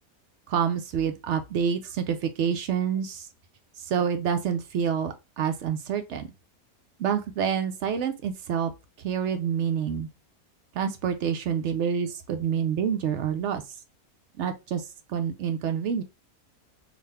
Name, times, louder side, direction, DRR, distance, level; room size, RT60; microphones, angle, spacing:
voice 1, 0.5-3.3 3.9-6.3 7.0-8.7 9.0-10.1 10.7-13.6 14.4-16.0, right 7 dB, 65° right, 0.8 m, -27 dB
3.7 x 2.4 x 3.2 m
omnidirectional pair, 1.5 m